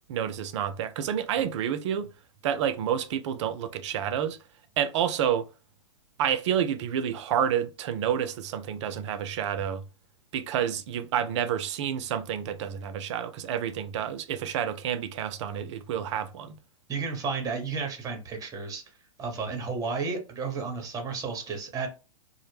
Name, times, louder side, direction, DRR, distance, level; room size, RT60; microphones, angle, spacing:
voice 1, 0.1-2.1 2.4-4.4 4.8-5.5 6.2-9.8 10.3-16.6, right 9 dB, 55° right, 0.4 m, -29 dB
voice 2, 16.9-18.8 19.2-21.9, right 4 dB, 20° right, 0.7 m, -32 dB
2.0 x 2.0 x 3.1 m
hypercardioid pair, 115°, 18 cm